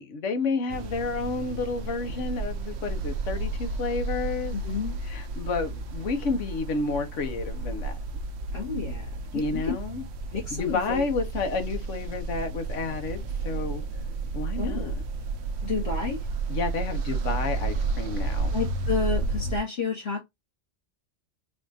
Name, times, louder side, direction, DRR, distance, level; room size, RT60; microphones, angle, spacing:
voice 1, 0.0-4.6 5.1-8.0 9.3-10.0 10.5-13.8 14.3-14.9 16.5-18.5, left 4 dB, 85° left, 1.2 m, -30 dB
sound 1, 0.7-19.6, right 3 dB, 70° right, 0.8 m, -32 dB
voice 2, 4.5-5.0 8.5-9.8 10.3-11.0 14.5-14.9 15.6-16.2 18.5-20.2, left 5 dB, 60° left, 1.5 m, -31 dB
4.1 x 2.4 x 2.6 m
omnidirectional pair, 1.2 m